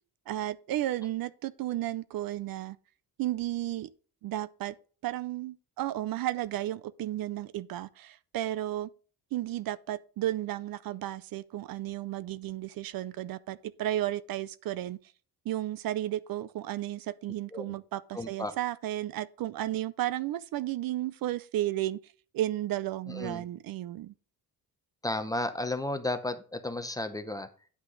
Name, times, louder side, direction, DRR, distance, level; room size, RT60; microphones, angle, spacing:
voice 1, 0.3-2.8 3.2-3.9 4.2-4.7 5.0-8.9 9.3-15.0 15.5-22.0 22.3-24.1, right 14 dB, 60° right, 0.5 m, -33 dB
voice 2, 18.1-18.5 23.1-23.4 25.0-27.5, left 2 dB, 10° left, 0.6 m, -33 dB
9.7 x 5.8 x 3.8 m
cardioid pair, 165°, 39 cm